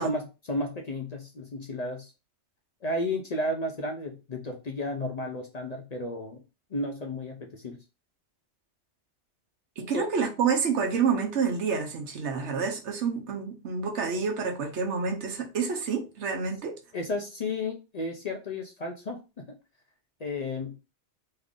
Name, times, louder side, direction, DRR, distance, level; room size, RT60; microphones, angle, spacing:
voice 1, 0.0-2.1 2.8-6.4 6.7-7.8 9.8-10.1 16.9-19.6 20.2-20.8, left 1 dB, 50° left, 0.5 m, -33 dB
voice 2, 9.8-16.8, right 5 dB, 80° right, 1.1 m, -28 dB
3.2 x 2.5 x 3.6 m
omnidirectional pair, 1.2 m